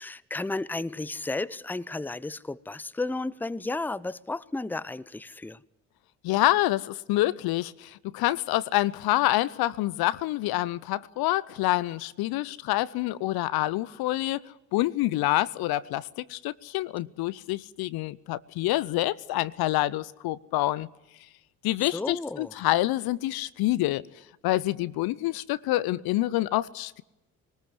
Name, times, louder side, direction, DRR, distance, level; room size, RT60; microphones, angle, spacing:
voice 1, 0.0-5.6 21.8-22.6, left 2 dB, 5° left, 0.8 m, -33 dB
voice 2, 6.2-14.4 14.7-20.9 21.6-24.0 24.4-27.0, left 16 dB, 65° left, 0.8 m, -27 dB
22.5 x 19.5 x 9.5 m
hypercardioid pair, 45°, 41 cm